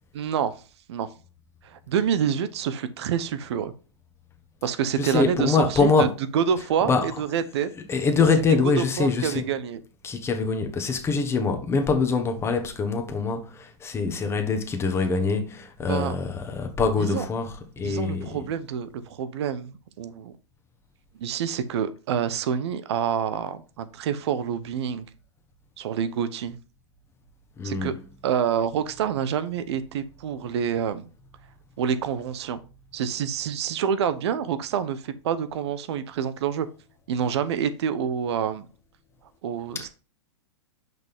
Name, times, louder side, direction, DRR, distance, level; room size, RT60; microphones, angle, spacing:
voice 1, 0.1-0.5 0.9-1.1 1.6-3.7 4.6-6.1 6.3-7.7 8.8-9.8 15.9-16.1 17.0-17.2 17.8-20.3 21.2-25.1 25.8-26.6 27.6-27.9 28.2-31.1 31.8-32.6 32.9-36.7 37.1-38.7 39.4-39.9, right 8 dB, 65° right, 0.9 m, -27 dB
voice 2, 5.0-6.1 6.8-7.1 7.7-9.5 10.0-18.4 27.6-27.9 39.7-39.9, left 4 dB, 15° left, 1.3 m, -24 dB
6.1 x 5.1 x 3.5 m
hypercardioid pair, 120°, 15 cm